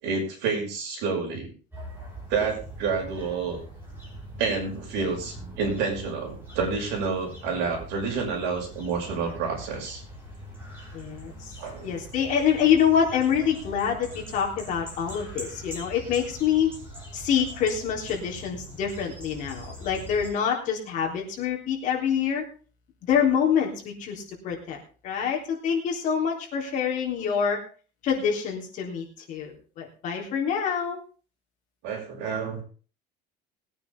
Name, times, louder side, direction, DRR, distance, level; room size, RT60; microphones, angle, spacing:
voice 1, 0.0-1.5 2.3-3.6 4.4-10.0 11.6-11.9 31.8-32.6, right 5 dB, 65° right, 1 dB, 6.1 m, -29 dB
sound 1, 1.7-20.3, right 1 dB, 10° right, 5.6 m, -42 dB
voice 2, 10.9-11.5 11.8-16.7 17.1-22.4 23.0-27.6 28.0-31.0, left 8 dB, 40° left, -1 dB, 3.7 m, -26 dB
20.5 x 9.4 x 3.7 m, 0.37 s
cardioid pair, 180°, 20 cm